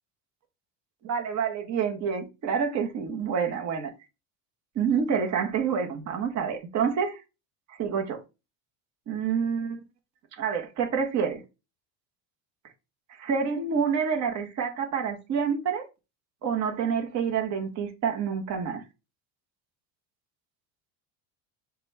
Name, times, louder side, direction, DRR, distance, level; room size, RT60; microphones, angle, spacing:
voice 1, 1.0-3.9 4.7-7.2 7.7-8.2 9.1-9.8 10.4-11.4 13.1-15.9 16.4-18.8, right 6 dB, 40° right, 0.9 m, -28 dB
6.6 x 2.3 x 3.2 m
cardioid pair, 135°, 44 cm